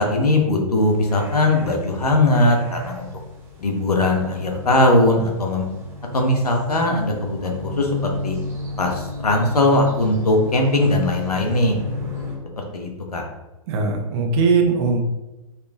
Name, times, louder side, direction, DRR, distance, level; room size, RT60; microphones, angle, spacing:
voice 1, 0.0-3.1 3.6-5.7 6.1-8.4 8.8-11.7 12.7-13.2, left 2 dB, 90° left, 1 dB, 1.1 m, -19 dB
sound 1, 0.8-12.4, left 1 dB, 10° right, 1.4 m, -34 dB
voice 2, 13.7-15.0, right 4 dB, 45° right, 3 dB, 1.0 m, -19 dB
5.1 x 4.3 x 2.4 m, 1.1 s
hypercardioid pair, 115°, 19 cm